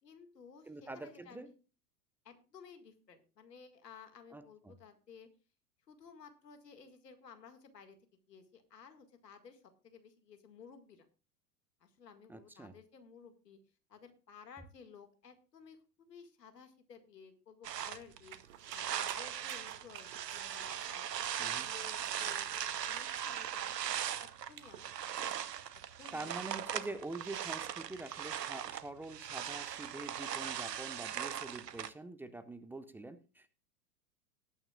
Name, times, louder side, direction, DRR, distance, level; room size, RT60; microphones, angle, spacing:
voice 1, 0.0-1.6 2.2-5.3 5.9-8.0 8.3-11.1 11.8-13.6 13.9-18.4 18.7-22.5 22.8-24.9 25.2-25.4 25.7-26.4 30.6-30.8, left 6 dB, 75° left, 8 dB, 2.0 m, -56 dB
voice 2, 0.7-1.5 4.3-4.7 12.3-12.7 21.4-21.7 26.1-33.5, right 2 dB, 5° right, 13 dB, 0.4 m, -45 dB
sound 1, 17.6-31.9, right 9 dB, 80° right, 0.9 m, -39 dB
sound 2, 18.3-25.4, right 12 dB, 55° right, 1.2 m, -53 dB
18.5 x 8.8 x 2.3 m, 0.33 s
figure-of-eight pair, 90°, 49 cm